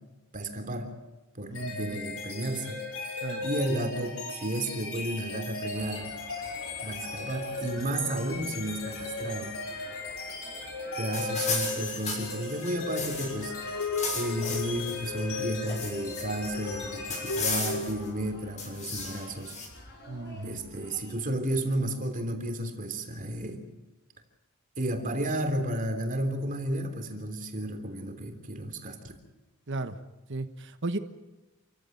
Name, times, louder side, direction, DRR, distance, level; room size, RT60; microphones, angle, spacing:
voice 1, 0.3-0.9 1.3-6.1 6.8-9.5 11.0-13.6 14.1-19.6 20.4-23.6 24.8-29.1, right 1 dB, 40° right, 6 dB, 3.3 m, -32 dB
sound 1, 1.5-18.2, left 3 dB, 80° left, 6.4 m, -36 dB
voice 2, 1.5-2.0 3.2-3.4 20.1-20.6 29.7-30.0 30.3-31.0, right 2 dB, 60° right, 9 dB, 1.3 m, -35 dB
sound 2, 5.7-21.2, left 1 dB, 50° left, 7.3 m, -49 dB
sound 3, 11.1-13.4 13.7-14.9 15.3-16.5 17.1-18.1 18.6-19.7, left 4 dB, 35° left, 6.7 m, -34 dB
28.5 x 15.5 x 9.3 m, 1.1 s
head